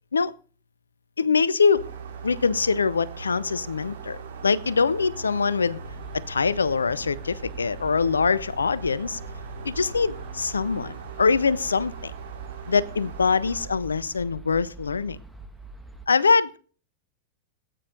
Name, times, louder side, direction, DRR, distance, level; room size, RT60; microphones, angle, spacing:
voice 1, 1.2-1.9 2.2-5.8 6.1-9.2 9.6-12.1 12.7-15.2 16.1-16.6, left 5 dB, 75° left, 22 dB, 0.6 m, -23 dB
sound 1, 1.7-13.7, right 4 dB, 65° right, 2.6 m, -39 dB
sound 2, 5.8-16.1, right 6 dB, ahead, 1.4 m, -45 dB
18.0 x 9.2 x 3.9 m, 0.40 s
figure-of-eight pair, 90°, 0 cm